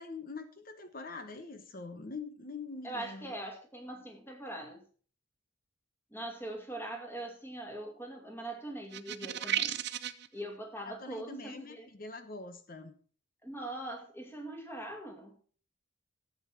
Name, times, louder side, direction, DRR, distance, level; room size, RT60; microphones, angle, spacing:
voice 1, 0.0-3.4 10.8-12.9, left 3 dB, 40° left, 9 dB, 1.0 m, -44 dB
voice 2, 2.8-4.8 6.1-9.8 10.3-11.9 13.4-15.4, right 1 dB, 10° left, 2 dB, 2.3 m, -42 dB
sound 1, 8.9-10.3, right 11 dB, 50° right, 0.7 m, -33 dB
13.5 x 8.5 x 4.5 m, 0.44 s
head